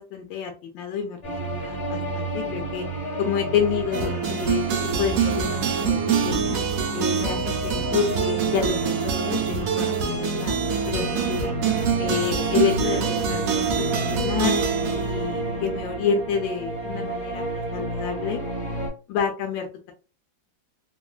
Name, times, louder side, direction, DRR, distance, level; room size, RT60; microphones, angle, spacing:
voice 1, 0.0-2.9 3.2-4.6 5.0-6.0 6.2-6.6 6.9-11.5 12.0-14.6 14.9-18.4 19.1-19.9, left 7 dB, 80° left, 3 dB, 1.3 m, -29 dB
sound 1, 1.2-18.9, right 2 dB, 35° left, 1.4 m, -30 dB
sound 2, 3.9-16.2, right 7 dB, 85° right, 0.7 m, -26 dB
3.2 x 2.2 x 2.3 m, 0.34 s
omnidirectional pair, 2.1 m